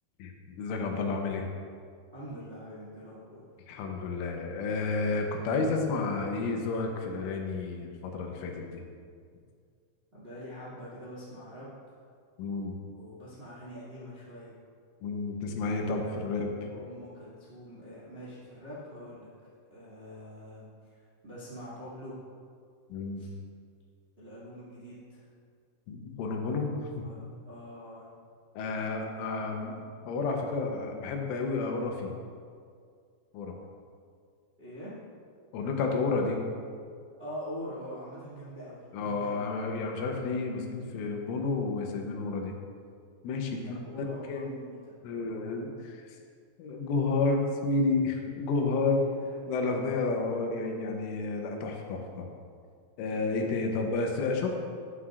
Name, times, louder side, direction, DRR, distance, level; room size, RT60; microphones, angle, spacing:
voice 1, 0.2-1.5 3.7-8.8 12.4-12.8 15.0-16.7 22.9-23.3 25.9-27.1 28.6-32.1 33.3-33.5 35.5-36.4 38.9-42.5 43.2-44.5 45.0-46.0 46.6-49.1 49.5-52.3 53.0-54.5, left 3 dB, 90° left, 2 dB, 3.5 m, -31 dB
voice 2, 2.1-3.4 10.1-11.7 12.9-14.5 16.0-19.3 19.7-20.7 21.2-22.2 23.2-23.3 24.2-25.2 27.0-28.1 34.6-34.9 37.2-39.5 43.6-45.0 49.1-49.4 53.1-53.5, equal, 85° right, -10 dB, 0.5 m, -44 dB
11.5 x 9.6 x 2.5 m, 2.2 s
omnidirectional pair, 5.5 m